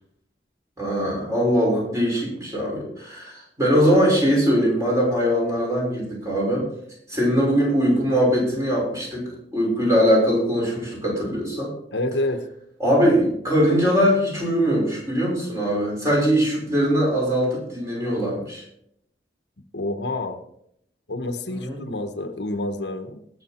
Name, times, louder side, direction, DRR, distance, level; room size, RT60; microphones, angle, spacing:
voice 1, 0.8-6.7 7.1-11.7 12.8-18.6 21.5-21.8, equal, 15° right, -3 dB, 5.6 m, -21 dB
voice 2, 11.9-12.4 19.7-20.4 21.1-23.2, left 2 dB, 80° left, 7 dB, 1.2 m, -28 dB
18.5 x 6.8 x 4.4 m, 0.73 s
head